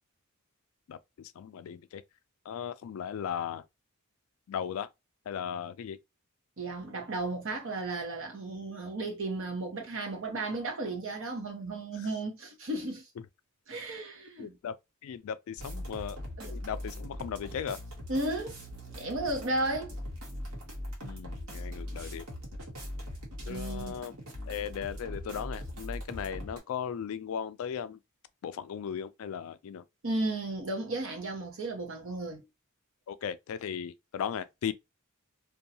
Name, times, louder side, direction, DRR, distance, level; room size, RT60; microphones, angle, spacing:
voice 1, 0.9-2.0 2.5-3.6 4.5-4.9 5.3-6.0 12.0-12.1 14.4-14.7 15.0-16.2 16.4-17.8 21.0-22.3 23.5-24.1 24.5-28.0 28.4-29.8 33.1-34.7, left 8 dB, 65° left, 0.3 m, -37 dB
voice 2, 6.6-13.1 13.7-14.6 16.4-16.5 18.1-18.6 18.9-19.9 23.5-24.0 30.0-32.5, right 2 dB, 65° right, 0.9 m, -34 dB
sound 1, 15.6-26.6, equal, 85° right, 1.1 m, -40 dB
2.6 x 2.3 x 2.7 m
head